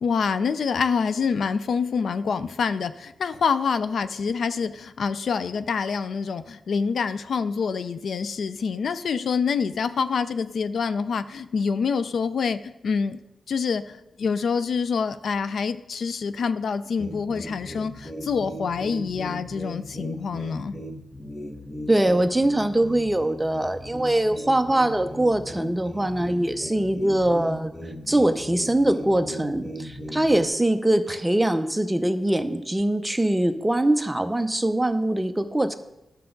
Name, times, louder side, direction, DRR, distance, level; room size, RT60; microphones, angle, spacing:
voice 1, 0.0-13.2 13.5-20.8, left 5 dB, 75° left, 12 dB, 0.4 m, -26 dB
sound 1, 17.0-30.5, equal, 10° left, 0.9 m, -38 dB
voice 2, 21.9-27.7 28.1-35.7, right 1 dB, 10° right, 8 dB, 0.7 m, -22 dB
11.5 x 6.9 x 3.9 m, 0.94 s
cardioid pair, 80°, 0 cm